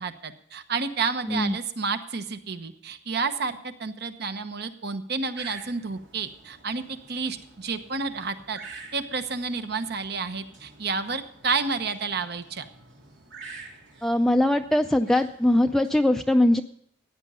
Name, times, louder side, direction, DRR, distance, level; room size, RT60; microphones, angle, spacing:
voice 1, 0.0-8.6 8.9-12.7, right 4 dB, 60° right, 9 dB, 1.1 m, -30 dB
sound 1, 5.4-15.9, right 3 dB, 85° right, 2.8 m, -48 dB
voice 2, 14.0-16.6, left 1 dB, ahead, 5 dB, 0.4 m, -21 dB
15.5 x 9.7 x 5.5 m, 0.70 s
head